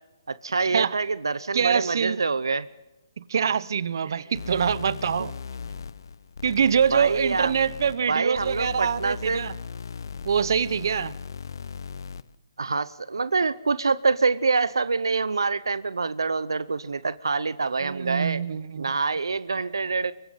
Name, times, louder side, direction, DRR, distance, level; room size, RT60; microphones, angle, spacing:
voice 1, 0.3-2.7 4.0-4.1 6.9-7.5 8.1-9.4 12.6-18.4 18.8-20.1, right 4 dB, 85° right, 0.7 m, -26 dB
voice 2, 1.5-2.2 3.2-5.3 6.4-9.5 10.2-11.1 17.8-18.9, right 7 dB, 60° right, 1.0 m, -24 dB
sound 1, 4.3-12.3, left 6 dB, 65° left, 0.8 m, -38 dB
25.5 x 23.0 x 5.8 m
hypercardioid pair, 150°, 2 cm